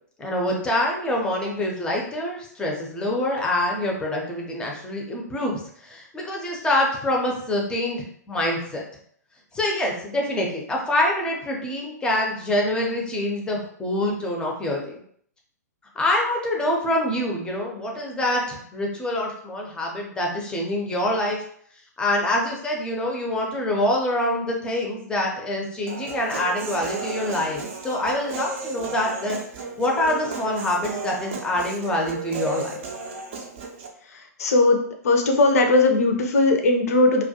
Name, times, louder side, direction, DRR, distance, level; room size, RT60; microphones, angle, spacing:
voice 1, 0.2-8.8 9.5-14.9 16.0-21.4 22.0-29.4 29.8-32.8, left 1 dB, 10° left, -1 dB, 0.5 m, -25 dB
Human voice, 25.9-33.9, right 4 dB, 45° right, 0.4 m, -34 dB
voice 2, 34.4-34.8 35.0-37.2, left 2 dB, 60° left, 4 dB, 0.5 m, -18 dB
2.2 x 2.2 x 2.7 m, 0.62 s
figure-of-eight pair, 110°, 9 cm